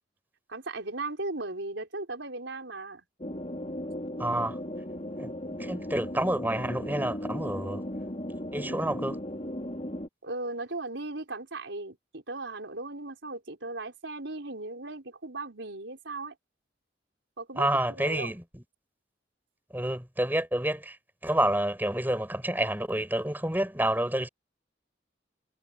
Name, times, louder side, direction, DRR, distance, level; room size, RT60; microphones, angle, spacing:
voice 1, 0.5-3.0 10.2-16.3 17.4-18.4, right 2 dB, 80° right, 4.6 m, -37 dB
sound 1, 3.2-10.1, left 1 dB, 35° left, 4.5 m, -36 dB
voice 2, 4.2-4.6 5.2-5.3 5.6-7.8 8.5-9.2 17.6-18.6 19.7-21.0 21.2-24.3, right 1 dB, 10° right, 7.0 m, -29 dB
head